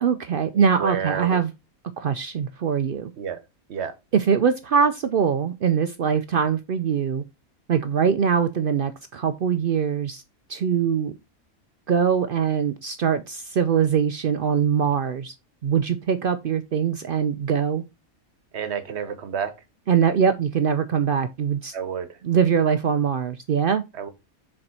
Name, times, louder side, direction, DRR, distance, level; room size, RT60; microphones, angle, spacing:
voice 1, 0.0-1.5 2.0-3.1 4.1-7.2 7.7-10.2 10.5-11.1 11.9-15.3 15.6-17.8 19.9-21.7 22.2-23.8, right 7 dB, 70° right, 0.5 m, -22 dB
voice 2, 0.5-1.4 3.2-3.4 3.7-3.9 18.5-19.5 21.7-22.2 23.9-24.1, right 7 dB, 55° right, 1.1 m, -30 dB
6.5 x 4.4 x 4.2 m
omnidirectional pair, 1.5 m